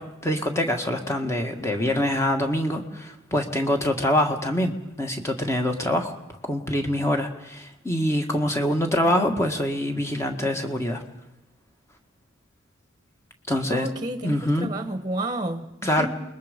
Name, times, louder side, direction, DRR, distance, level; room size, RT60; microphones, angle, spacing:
voice 1, 0.0-6.1 6.4-11.0 13.5-13.9 14.2-14.7 15.8-16.1, left 1 dB, 15° left, 1.8 m, -25 dB
voice 2, 13.7-15.7 16.0-16.1, right 1 dB, 20° right, 1.4 m, -30 dB
29.0 x 21.0 x 5.3 m
head